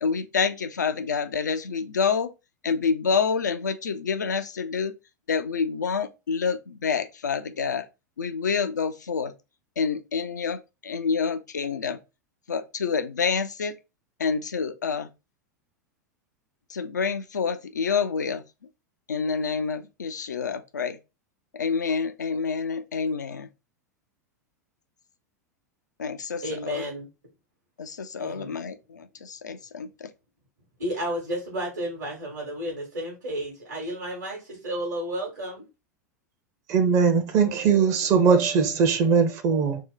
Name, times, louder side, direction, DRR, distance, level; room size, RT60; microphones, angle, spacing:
voice 1, 0.0-2.3 2.6-4.9 5.3-7.9 8.2-9.3 9.8-12.0 12.5-13.7 14.2-15.1 16.7-18.4 19.1-21.0 21.5-23.5 26.0-26.8 27.8-30.1, left 5 dB, 75° left, 0.4 m, -28 dB
voice 2, 26.4-27.1 28.2-28.6 30.8-35.7, equal, 70° right, 1.1 m, -32 dB
voice 3, 36.7-39.8, right 6 dB, 35° right, 0.6 m, -20 dB
2.8 x 2.1 x 3.7 m
figure-of-eight pair, 90°, 10 cm